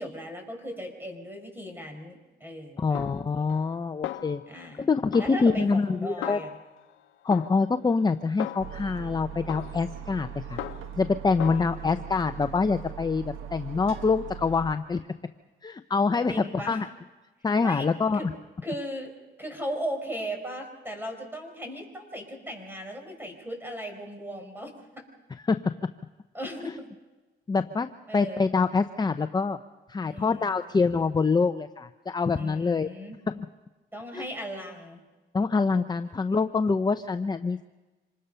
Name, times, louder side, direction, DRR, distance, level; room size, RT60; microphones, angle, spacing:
voice 1, 0.0-3.4 4.5-4.9 5.2-6.6 11.5-12.1 16.3-16.8 17.6-17.9 18.1-18.3 18.6-19.1 19.4-25.0 26.3-26.9 28.1-28.5 30.0-30.6 32.4-33.2 33.9-35.0, equal, 10° right, 5 dB, 5.2 m, -37 dB
voice 2, 2.8-4.4 4.8-6.4 7.2-10.6 11.0-15.0 15.6-16.9 17.4-18.2 25.5-25.6 27.5-29.6 29.9-32.9 33.3-33.5 34.1-34.2 35.3-37.6, left 4 dB, 20° left, 9 dB, 0.7 m, -25 dB
Snare drum, 2.9-3.8 4.0-4.8 5.1-6.9 7.3-9.0 9.5-11.1 11.4-11.7, left 13 dB, 85° left, 0.8 m, -39 dB
sound 1, 8.6-14.8, right 9 dB, 85° right, 1.5 m, -40 dB
26.5 x 20.0 x 5.6 m, 1.2 s
cardioid pair, 90°, 20 cm